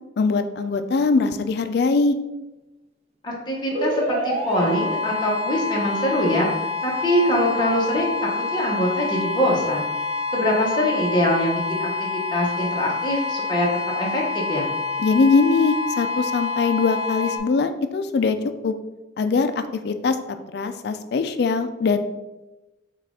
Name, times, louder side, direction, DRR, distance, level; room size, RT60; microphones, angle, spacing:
voice 1, 0.2-2.2 15.0-18.4 18.6-18.7 19.2-19.5 19.8-20.2 20.5-22.0, left 4 dB, 60° left, 9 dB, 0.3 m, -21 dB
voice 2, 3.2-9.9 10.3-13.7 14.0-14.7, equal, 25° left, -3 dB, 1.0 m, -23 dB
sound 1, 3.7-17.4, left 3 dB, 35° right, 0.5 m, -27 dB
5.8 x 2.4 x 3.6 m, 1.0 s
head